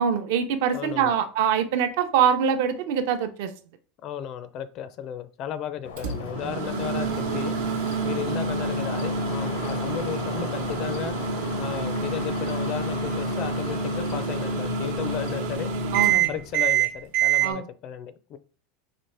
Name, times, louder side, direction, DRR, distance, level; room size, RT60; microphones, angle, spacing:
voice 1, 0.0-3.5 15.9-16.3 17.4-17.6, right 8 dB, 60° right, 0.6 m, -24 dB
voice 2, 0.7-1.2 4.0-7.5 8.0-11.2 11.6-15.7 16.3-18.4, left 9 dB, 35° left, 0.4 m, -34 dB
sound 1, 5.8-15.6, left 7 dB, 90° left, 0.7 m, -40 dB
Microwave oven, 6.0-17.5, right 5 dB, 85° right, 1.1 m, -27 dB
4.1 x 3.9 x 3.3 m
supercardioid pair, 165°, 0 cm